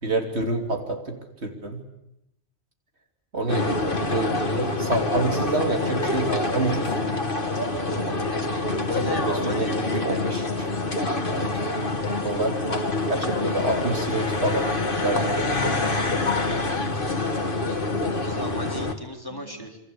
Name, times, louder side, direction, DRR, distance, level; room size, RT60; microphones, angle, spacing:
voice 1, 0.0-1.8 3.3-7.0 7.8-10.7 11.3-11.6 12.2-12.6 13.0-14.8 15.0-15.9 19.3-19.4, right 2 dB, 65° right, 4 dB, 3.5 m, -28 dB
sound 1, 3.5-18.9, left 2 dB, 50° left, 2.5 m, -26 dB
voice 2, 8.9-9.8 18.2-19.8, equal, 20° left, 2 dB, 3.6 m, -35 dB
28.5 x 23.5 x 8.6 m, 0.83 s
omnidirectional pair, 1.2 m